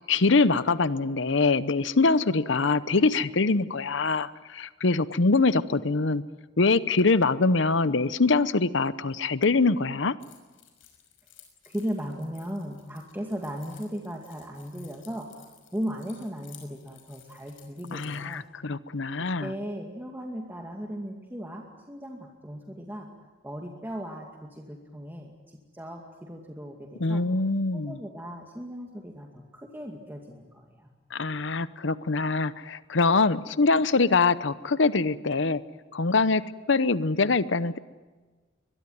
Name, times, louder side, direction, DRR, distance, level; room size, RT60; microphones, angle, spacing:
voice 1, 0.1-6.2 6.6-10.2 17.9-19.5 27.0-28.0 31.1-35.6 35.9-37.8, left 3 dB, 70° left, 15 dB, 0.9 m, -24 dB
Keys jangling, 10.2-18.4, left 10 dB, 85° left, 5.9 m, -56 dB
voice 2, 11.6-15.3 15.7-18.4 19.4-23.1 23.4-27.2 27.7-30.9, equal, 10° right, 0 dB, 2.3 m, -37 dB
23.0 x 22.0 x 9.4 m, 1.3 s
head